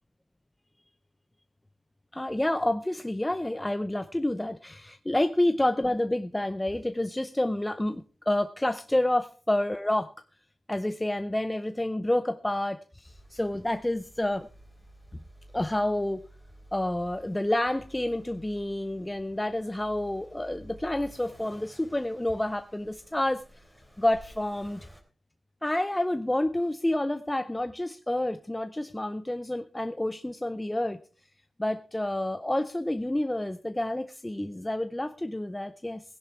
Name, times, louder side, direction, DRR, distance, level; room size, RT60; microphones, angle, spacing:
voice 1, 2.1-10.1 10.7-14.5 15.5-16.2 16.7-23.4 24.0-24.8 25.6-31.0 31.6-36.0, left 1 dB, 15° left, 9 dB, 0.6 m, -29 dB
Accelerating revving vroom, 13.0-25.0, right 1 dB, 5° right, 3.3 m, -53 dB
18.0 x 10.5 x 3.4 m, 0.36 s
cardioid pair, 65°, 0 cm